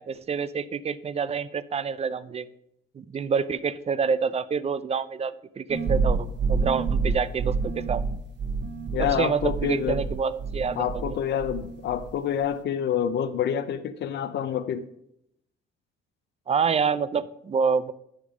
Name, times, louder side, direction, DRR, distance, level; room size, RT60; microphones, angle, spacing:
voice 1, 0.0-2.5 2.9-8.0 9.2-11.1 16.5-17.9, right 6 dB, 30° right, 15 dB, 0.5 m, -27 dB
sound 1, 5.7-11.1 11.4-12.1, right 4 dB, 60° right, 1.5 m, -28 dB
voice 2, 8.9-10.0 10.8-14.9, left 9 dB, 60° left, 12 dB, 0.5 m, -27 dB
10.0 x 3.5 x 6.1 m, 0.76 s
cardioid pair, 90°, 20 cm